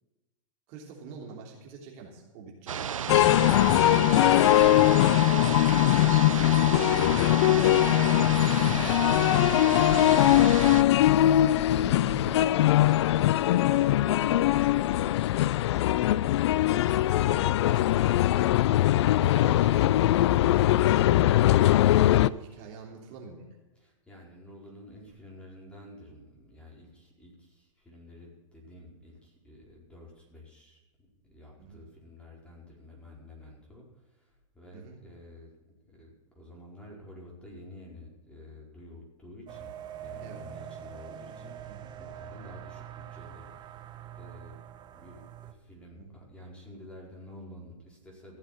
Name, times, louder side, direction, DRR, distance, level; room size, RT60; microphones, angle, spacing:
voice 1, 0.7-3.2 4.0-4.5 5.3-6.2 6.6-7.1 7.4-10.5 10.8-13.3 13.7-14.2 14.5-18.4 19.1-21.4 22.0-23.4 31.6-31.8 34.7-35.0 40.2-40.4 41.7-41.9 45.9-46.2, right 5 dB, 45° right, -1 dB, 3.2 m, -45 dB
sound 1, 2.7-10.8, right 8 dB, 85° right, 0.4 m, -33 dB
sound 2, 3.1-22.3, left 14 dB, 55° left, 0.4 m, -21 dB
voice 2, 23.8-35.5 35.9-36.1 36.3-39.7 40.0-43.8 44.2-44.6 44.9-48.4, left 1 dB, 5° left, -3 dB, 4.7 m, -50 dB
sound 3, 39.5-45.5, right 10 dB, 25° right, 1.0 m, -44 dB
15.5 x 7.4 x 7.8 m, 1.1 s
hypercardioid pair, 110°, 17 cm